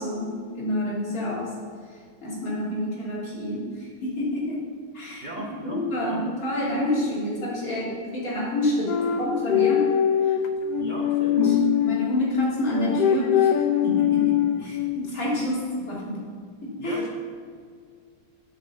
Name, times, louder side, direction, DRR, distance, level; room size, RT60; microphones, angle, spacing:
voice 1, 0.0-1.5 1.9-9.9 10.2-10.4 11.3-16.3 16.6-17.0, left 1 dB, 50° left, -5 dB, 2.7 m, -28 dB
voice 2, 5.2-6.2 10.8-11.6 14.6-14.7 16.8-17.1, right 2 dB, 85° right, -1 dB, 0.4 m, -36 dB
sound 1, 8.9-12.0 12.7-15.0, left 10 dB, 70° left, 1.1 m, -22 dB
8.1 x 6.0 x 6.9 m, 2.1 s
omnidirectional pair, 1.9 m